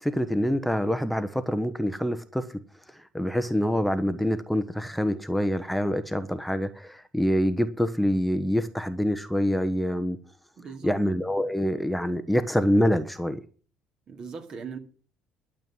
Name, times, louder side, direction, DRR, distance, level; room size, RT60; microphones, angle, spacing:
voice 1, 0.0-2.5 2.9-10.2 10.8-13.4, equal, ahead, 1.1 m, -26 dB
voice 2, 10.6-10.9 14.1-14.8, right 5 dB, 45° right, 2.5 m, -39 dB
12.5 x 7.6 x 7.5 m
figure-of-eight pair, 55°, 2 cm